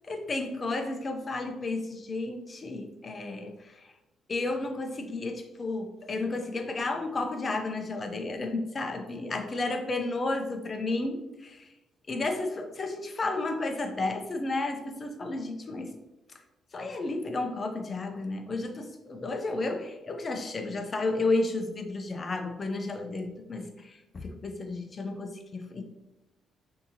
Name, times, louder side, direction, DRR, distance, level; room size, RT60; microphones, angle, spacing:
voice 1, 0.1-3.9 4.3-11.7 12.1-15.9 16.7-25.8, left 2 dB, 35° left, 6 dB, 0.6 m, -32 dB
6.3 x 2.8 x 2.8 m, 0.97 s
cardioid pair, 90°, 0 cm